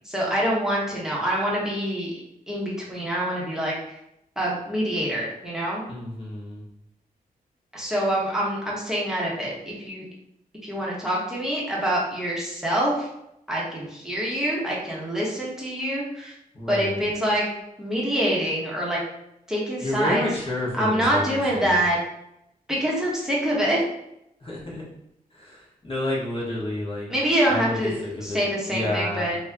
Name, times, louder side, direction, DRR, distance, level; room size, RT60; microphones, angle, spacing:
voice 1, 0.0-2.1 2.5-3.7 4.4-5.8 7.7-10.1 10.6-13.1 13.5-16.3 16.7-17.5 17.8-19.0 19.5-20.2 20.8-22.0 22.7-23.8 27.1-28.0 28.2-29.4, equal, 5° right, -5 dB, 1.1 m, -25 dB
voice 2, 5.9-6.6 16.5-17.1 19.8-21.8 24.4-24.8 25.3-27.1 27.5-28.4 28.7-29.3, left 1 dB, 35° left, -5 dB, 1.3 m, -30 dB
3.1 x 2.8 x 3.6 m, 0.81 s
wide cardioid pair, 115°, 15 cm